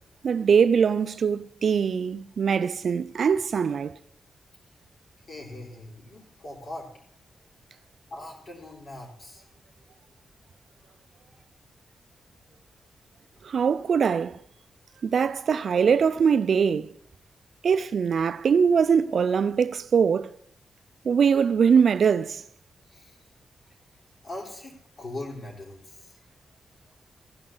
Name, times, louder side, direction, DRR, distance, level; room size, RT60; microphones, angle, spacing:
voice 1, 0.2-4.0 13.4-14.4 15.0-16.9 17.6-20.3 21.1-22.4, right 6 dB, 60° right, 0.5 m, -22 dB
voice 2, 5.3-6.9 8.1-9.4 22.9-23.2 24.2-26.2, left 1 dB, 50° left, 4.6 m, -40 dB
16.0 x 5.5 x 7.7 m
wide cardioid pair, 135°, 0 cm